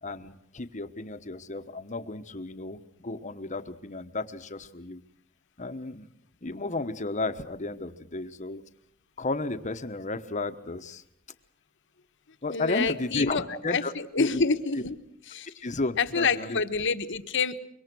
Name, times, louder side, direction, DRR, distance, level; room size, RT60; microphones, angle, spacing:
voice 1, 0.0-5.0 5.6-6.1 6.4-8.6 9.2-11.0 12.4-14.4 15.6-16.6, left 2 dB, 35° left, 9 dB, 1.2 m, -33 dB
voice 2, 12.5-15.0 15.3-15.5 16.0-17.6, left 4 dB, 60° left, 9 dB, 1.3 m, -28 dB
25.5 x 23.0 x 6.2 m, 0.74 s
head